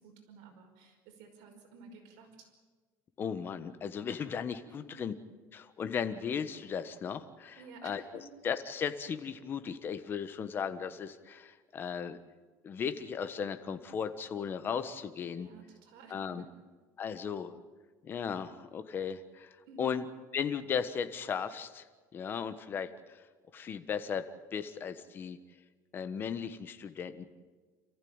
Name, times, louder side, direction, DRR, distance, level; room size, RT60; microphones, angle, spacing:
voice 1, 0.0-2.5 4.6-4.9 7.5-8.2 15.4-16.5 19.7-19.9, right 4 dB, 75° right, 3 dB, 5.3 m, -53 dB
voice 2, 3.2-5.1 5.5-8.0 8.4-12.2 12.6-15.5 16.1-16.5 17.0-17.6 18.0-20.0 20.3-21.8 22.1-23.2 23.5-25.4 25.9-27.2, left 7 dB, 30° left, 11 dB, 1.3 m, -36 dB
27.5 x 14.5 x 8.9 m, 1.4 s
cardioid pair, 150°, 7 cm